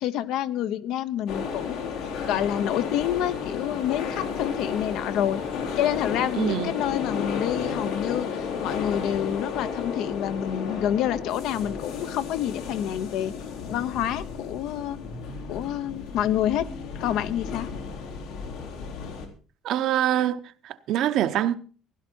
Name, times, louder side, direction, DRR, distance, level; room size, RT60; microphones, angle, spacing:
voice 1, 0.0-5.4 5.8-13.3 13.7-15.0 15.5-16.7 16.9-17.7, left 11 dB, 70° left, 0.8 m, -28 dB
sound 1, 1.3-19.3, left 6 dB, 90° left, 3.5 m, -33 dB
voice 2, 6.4-6.7 19.6-21.6, right 11 dB, 60° right, 0.8 m, -25 dB
16.0 x 12.0 x 4.4 m
cardioid pair, 160°, 0 cm